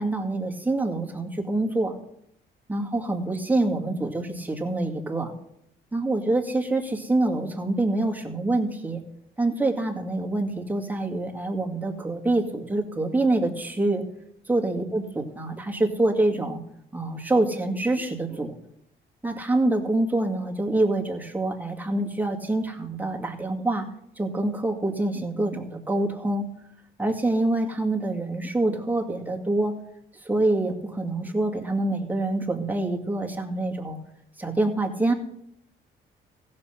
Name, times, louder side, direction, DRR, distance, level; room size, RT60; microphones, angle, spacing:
voice 1, 0.0-2.0 2.7-5.3 5.9-9.0 9.4-14.0 14.5-16.6 16.9-18.6 19.2-23.9 24.2-26.5 27.0-29.7 30.3-34.0 34.4-35.1, right 2 dB, 10° right, 0 dB, 2.1 m, -26 dB
15.5 x 6.5 x 5.8 m, 0.75 s
cardioid pair, 90°, 20 cm